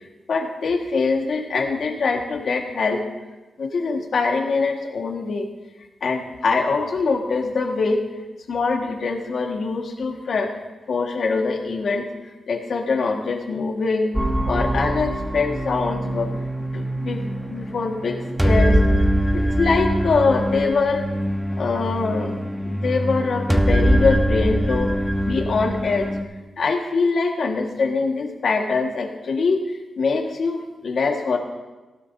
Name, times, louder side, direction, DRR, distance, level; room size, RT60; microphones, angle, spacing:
voice 1, 0.3-3.0 3.6-5.5 6.0-8.0 8.5-10.5 10.9-12.1 12.5-14.1 14.5-16.3 16.6-18.2 18.4-18.8 19.3-21.1 21.6-22.3 22.6-24.9 25.2-26.1 26.6-29.6 30.0-31.4, left 4 dB, 70° left, 2 dB, 1.7 m, -23 dB
sound 1, 14.1-26.2, equal, 5° right, 1.1 m, -23 dB
18.5 x 16.0 x 2.7 m, 1.2 s
wide cardioid pair, 95°, 0 cm